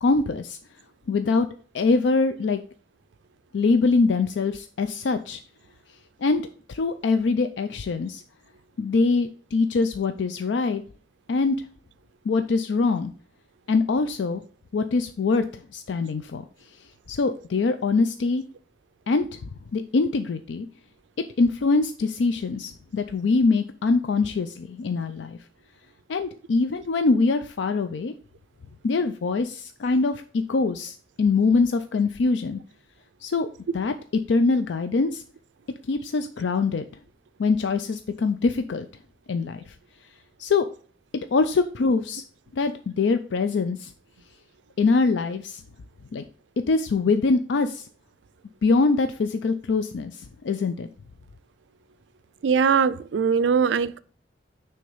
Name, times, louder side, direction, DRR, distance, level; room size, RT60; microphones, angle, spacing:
voice 1, 0.0-0.6 1.1-1.5 1.7-2.6 3.5-5.4 6.2-8.2 8.8-10.8 11.3-11.6 12.3-13.1 13.7-14.4 14.7-15.4 15.7-16.4 17.1-18.4 19.1-20.7 21.4-25.4 26.1-28.1 28.8-32.6 33.2-33.5 33.7-33.9 34.3-35.2 35.9-36.8 37.4-38.9 39.3-39.7 40.4-40.7 41.3-42.2 42.5-43.9 44.8-45.6 46.1-46.2 46.7-47.9 48.6-50.9, left 4 dB, 75° left, 0.4 m, -23 dB
voice 2, 52.4-54.0, right 6 dB, 75° right, 0.4 m, -21 dB
6.2 x 3.4 x 5.4 m
head